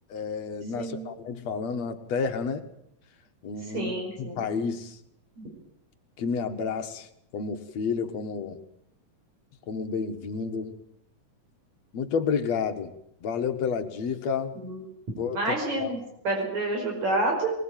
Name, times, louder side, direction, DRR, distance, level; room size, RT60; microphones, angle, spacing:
voice 1, 0.1-2.7 3.4-5.0 6.2-7.1 7.3-8.6 9.7-10.8 11.9-12.9 13.2-14.6 15.2-15.9, left 5 dB, 65° left, 8 dB, 2.8 m, -30 dB
voice 2, 0.8-1.1 3.7-4.4 14.6-14.8 15.3-16.0 16.2-17.5, right 2 dB, 70° right, 0 dB, 6.6 m, -28 dB
22.0 x 21.0 x 9.1 m, 0.73 s
omnidirectional pair, 3.4 m